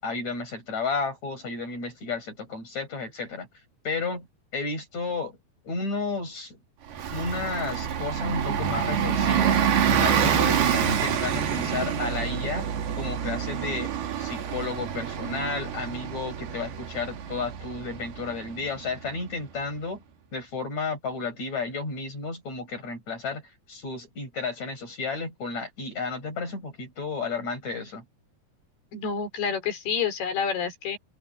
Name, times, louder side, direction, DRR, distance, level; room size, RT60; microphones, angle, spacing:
voice 1, 0.0-3.5 3.8-4.3 4.5-5.4 5.7-6.6 7.1-9.6 10.0-12.7 13.0-13.9 14.2-20.0 20.3-23.4 23.7-28.0, left 4 dB, 45° left, 9.1 m, -32 dB
Bus, 6.9-19.2, right 8 dB, 80° right, 4.4 m, -27 dB
voice 2, 28.9-31.0, left 6 dB, 80° left, 5.6 m, -28 dB
omnidirectional pair, 4.5 m